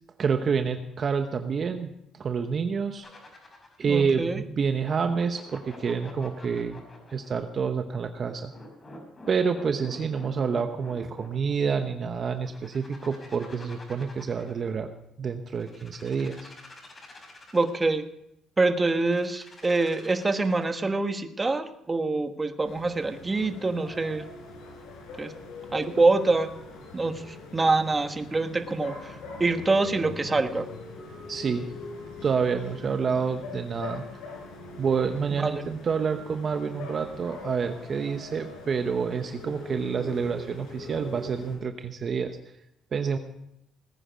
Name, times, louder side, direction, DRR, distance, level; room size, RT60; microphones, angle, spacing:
voice 1, 0.2-3.1 3.8-6.8 7.1-8.5 9.3-14.9 15.2-16.5 31.3-31.7 32.2-34.0 34.8-42.4 42.9-43.2, right 6 dB, 40° right, 7 dB, 1.0 m, -28 dB
sound 1, 3.0-3.9 4.8-7.3 8.2-11.6 12.3-14.7 15.5-18.0 18.9-20.8, left 2 dB, 30° left, 5.7 m, -48 dB
voice 2, 3.9-4.4 17.5-18.0 18.6-24.2 25.2-25.3 25.7-26.5 26.9-30.7 35.4-35.6, right 3 dB, 20° right, 7 dB, 1.3 m, -25 dB
sound 2, 22.6-41.6, left 3 dB, 85° left, 5.6 m, -42 dB
19.0 x 10.0 x 5.2 m, 0.80 s
cardioid pair, 110°, 0 cm